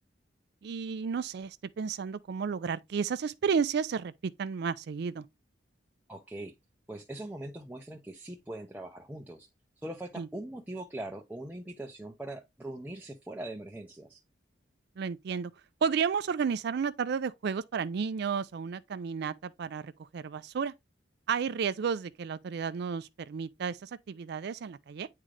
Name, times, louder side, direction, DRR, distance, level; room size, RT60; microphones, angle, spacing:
voice 1, 0.6-5.2 10.2-10.3 15.0-15.5 15.8-20.7 21.3-25.1, right 6 dB, 60° right, 0.4 m, -32 dB
voice 2, 6.1-6.5 6.9-9.5 9.8-14.2, right 1 dB, 10° right, 0.6 m, -41 dB
8.8 x 3.7 x 3.2 m
head